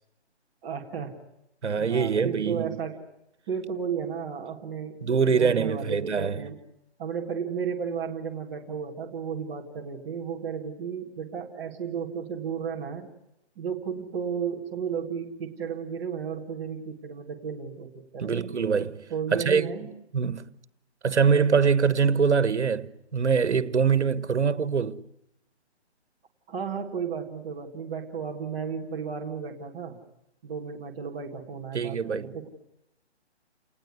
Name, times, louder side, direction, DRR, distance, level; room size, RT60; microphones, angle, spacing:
voice 1, 0.6-1.2 1.7-3.0 3.5-5.0 5.3-6.6 7.0-13.1 13.6-18.3 19.1-19.9 26.5-30.0 30.4-32.5, right 6 dB, 10° right, 1.7 m, -33 dB
voice 2, 1.6-2.7 5.0-6.5 18.2-19.7 20.1-20.5 21.0-25.0 31.7-32.3, right 6 dB, 85° right, 1.5 m, -24 dB
29.0 x 19.5 x 9.6 m
hypercardioid pair, 175°, 34 cm